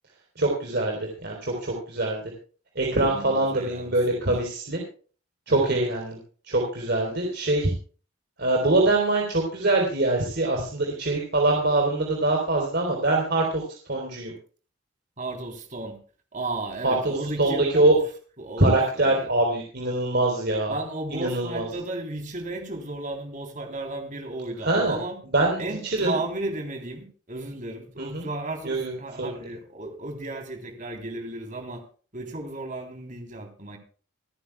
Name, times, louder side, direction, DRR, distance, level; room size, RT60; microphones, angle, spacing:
voice 1, 0.4-2.2 2.8-4.8 5.5-6.2 6.5-7.7 8.4-13.6 13.9-14.3 16.8-17.9 18.6-20.8 21.1-21.7 24.6-25.0 25.3-25.6 25.9-26.2 28.0-28.3 28.6-28.9 29.2-29.4, right 2 dB, 55° right, 3.7 m, -23 dB
voice 2, 2.9-4.3 5.5-5.8 15.2-16.0 16.3-17.9 18.4-19.3 20.7-25.2 25.6-31.8 32.1-33.8, right 2 dB, 40° right, 3.5 m, -34 dB
27.5 x 9.7 x 2.3 m
head